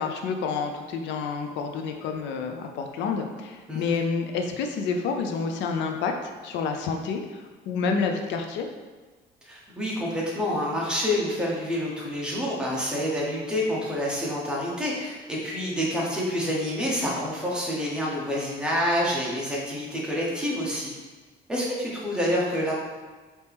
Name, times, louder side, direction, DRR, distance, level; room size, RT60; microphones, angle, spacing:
voice 1, 0.0-8.7, left 5 dB, 85° left, 4 dB, 0.5 m, -29 dB
voice 2, 9.4-20.9 21.5-22.7, equal, 5° right, -5 dB, 1.1 m, -28 dB
4.3 x 2.9 x 3.5 m, 1.3 s
cardioid pair, 120°, 18 cm